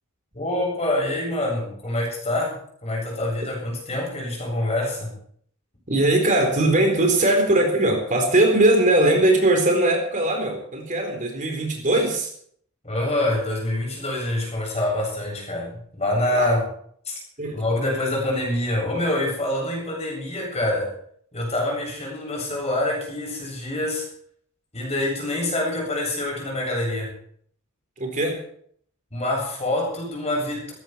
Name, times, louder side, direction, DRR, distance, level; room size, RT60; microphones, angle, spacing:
voice 1, 0.3-5.1 12.8-16.6 17.1-17.2 17.5-20.9 21.3-24.1 24.7-27.2 29.1-30.7, left 1 dB, 30° left, -1 dB, 7.9 m, -26 dB
voice 2, 5.9-12.3 16.3-16.5 17.4-17.6 28.0-28.4, right 1 dB, 35° right, 2 dB, 4.2 m, -20 dB
19.0 x 14.5 x 4.7 m, 0.62 s
head